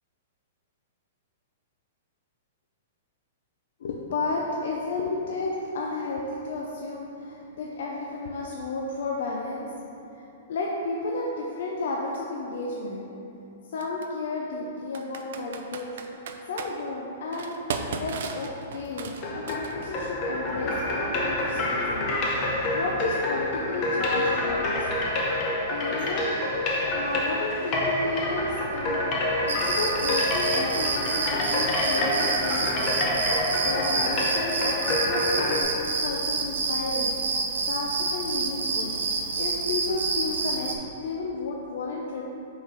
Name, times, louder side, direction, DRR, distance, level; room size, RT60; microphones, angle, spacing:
voice 1, 3.8-9.7 10.5-13.1 13.7-15.9 16.5-17.6 18.0-22.1 22.7-24.9 25.6-26.4 26.9-29.1 29.5-33.1 33.6-37.2 37.7-39.0 39.4-42.2, left 3 dB, 60° left, -2 dB, 0.5 m, -32 dB
Computer keyboard, 12.1-12.2 13.8-14.1 14.9-16.7 17.3-20.0, right 5 dB, 60° right, 0.4 m, -35 dB
sound 1, 19.0-35.6, left 1 dB, 25° left, 0.7 m, -27 dB
sound 2, 29.5-40.7, right 4 dB, 85° right, 0.7 m, -28 dB
5.5 x 3.8 x 4.5 m, 2.8 s
hypercardioid pair, 175°, 0 cm